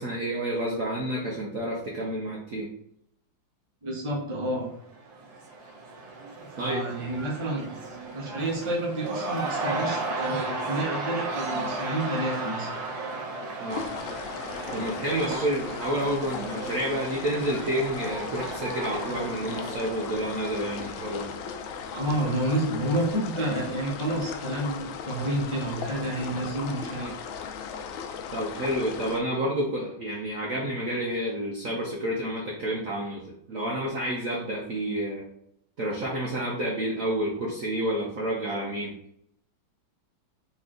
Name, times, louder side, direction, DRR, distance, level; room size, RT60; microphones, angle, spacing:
voice 1, 0.0-2.7 6.6-6.8 13.6-13.9 14.7-21.3 28.3-35.3 35.8-38.9, right 1 dB, 55° right, -3 dB, 1.0 m, -29 dB
voice 2, 3.8-4.7 6.4-7.8 8.1-12.7 15.2-15.4 21.9-27.2, right 1 dB, 20° right, -3 dB, 0.9 m, -29 dB
Cheering / Crowd, 4.8-21.7, right 3 dB, 75° right, 1.5 m, -35 dB
sound 1, 13.7-29.2, left 6 dB, 85° left, 1.4 m, -37 dB
4.1 x 3.3 x 3.7 m, 0.70 s
omnidirectional pair, 2.1 m